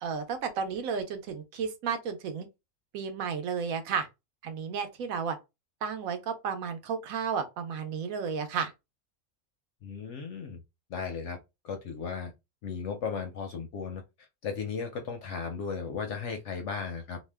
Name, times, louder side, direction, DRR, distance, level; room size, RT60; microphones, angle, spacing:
voice 1, 0.0-2.5 2.9-4.1 4.4-5.4 5.8-8.7, right 6 dB, 70° right, 1.0 m, -32 dB
voice 2, 9.8-10.6 10.9-11.4 11.6-12.3 12.6-14.0 14.4-17.2, left 5 dB, 65° left, 0.7 m, -35 dB
2.7 x 2.1 x 3.3 m
omnidirectional pair, 1.5 m